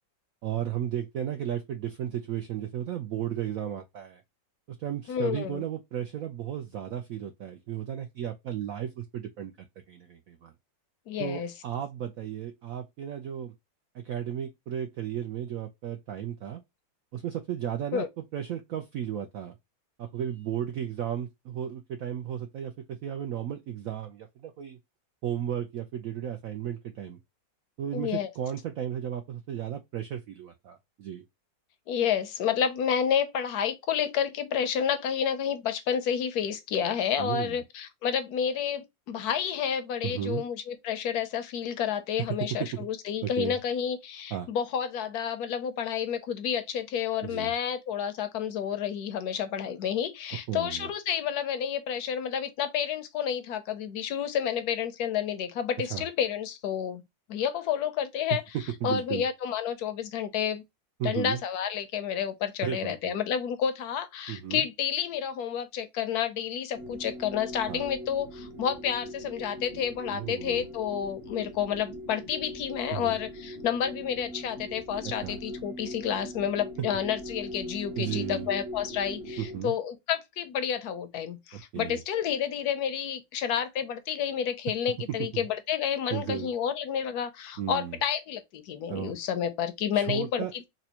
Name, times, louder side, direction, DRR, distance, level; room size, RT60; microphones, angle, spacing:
voice 1, 0.4-4.2 4.7-10.5 11.2-13.5 13.9-16.6 17.1-19.6 20.0-24.8 25.2-27.2 27.8-31.2 37.2-37.6 40.0-40.4 42.6-42.9 43.2-43.6 44.3-44.5 47.2-47.5 50.5-50.9 55.8-56.1 58.5-59.3 61.0-61.4 62.6-63.2 64.3-64.7 67.7-67.9 70.1-70.6 72.9-73.2 75.0-75.4 78.0-78.5 79.4-79.8 81.5-82.0 85.1-85.5 86.1-86.5 87.6-88.0 88.9-89.1 89.9-90.7, right 10 dB, 75° right, 0.8 m, -34 dB
voice 2, 5.1-5.6 11.1-11.5 17.9-18.1 27.9-28.3 31.9-57.0 57.3-58.4 58.8-60.6 61.0-90.7, left 8 dB, 70° left, 1.0 m, -30 dB
sound 1, 66.7-79.6, equal, 45° right, 1.1 m, -41 dB
4.1 x 2.2 x 2.8 m
omnidirectional pair, 2.0 m